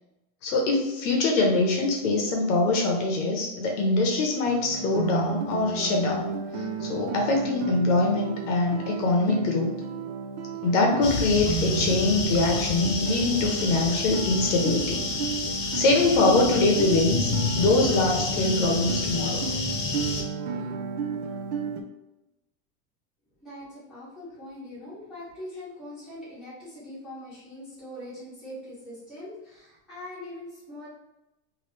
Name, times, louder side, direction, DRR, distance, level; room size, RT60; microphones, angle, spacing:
voice 1, 0.4-9.7 10.6-15.0 15.7-19.5, left 2 dB, 60° left, 1 dB, 0.8 m, -23 dB
Guitar, 4.5-21.8, right 5 dB, 60° right, 0.5 m, -33 dB
sound 1, 11.0-20.2, left 4 dB, 35° left, 0.4 m, -30 dB
voice 2, 23.4-30.9, left 1 dB, ahead, -13 dB, 1.2 m, -42 dB
3.0 x 2.7 x 3.0 m, 0.97 s
supercardioid pair, 175°, 40 cm